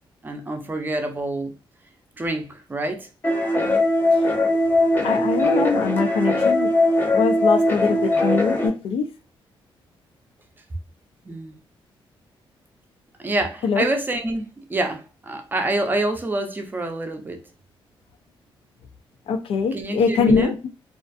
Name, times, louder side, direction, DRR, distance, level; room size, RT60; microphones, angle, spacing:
voice 1, 0.2-1.5 2.2-3.1 11.2-11.5 13.2-17.4 19.7-20.5, right 2 dB, 20° right, 0.5 m, -27 dB
sound 1, 3.2-8.7, left 1 dB, 20° left, 0.7 m, -20 dB
voice 2, 5.0-6.7 7.1-9.1 13.6-13.8 19.3-20.6, left 5 dB, 85° left, 0.4 m, -22 dB
2.5 x 2.3 x 2.4 m
cardioid pair, 125°, 9 cm